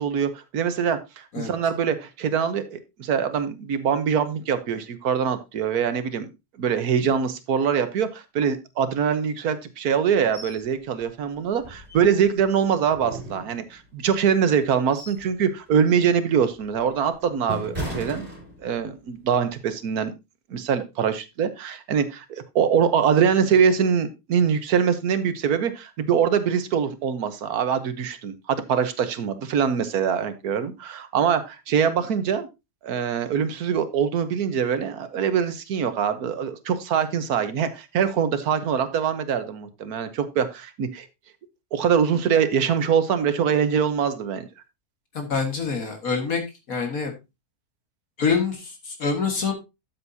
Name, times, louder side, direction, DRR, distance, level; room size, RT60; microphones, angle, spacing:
voice 1, 0.0-6.3 6.6-18.3 18.6-20.1 20.5-32.5 32.8-41.1 41.7-44.5, right 7 dB, 75° right, 11 dB, 1.6 m, -23 dB
sound 1, 10.3-10.6 11.0-11.1 11.6-12.4 12.9-13.9 14.5-15.3 15.7-16.0 16.5-19.0 19.3-19.5, right 1 dB, 30° right, 3.8 m, -36 dB
voice 2, 45.1-46.4 46.7-47.1 48.2-49.5, left 5 dB, 65° left, 3 dB, 2.2 m, -25 dB
12.5 x 7.4 x 2.7 m, 0.24 s
omnidirectional pair, 1.6 m